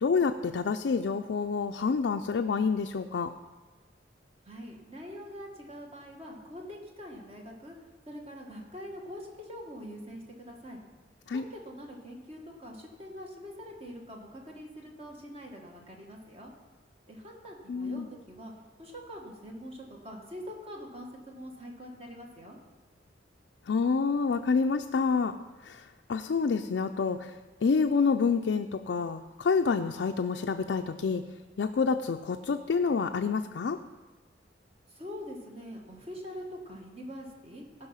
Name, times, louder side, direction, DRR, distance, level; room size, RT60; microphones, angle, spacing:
voice 1, 0.0-3.3 11.3-11.4 17.7-18.1 23.7-25.4 25.6-27.3 27.6-31.2 31.6-33.8, left 5 dB, 70° left, 5 dB, 0.4 m, -28 dB
voice 2, 4.4-7.8 8.1-10.8 11.3-16.5 17.1-18.5 18.8-22.6 34.9-37.6, equal, 35° right, 0 dB, 1.7 m, -44 dB
15.0 x 5.5 x 5.7 m, 1.3 s
head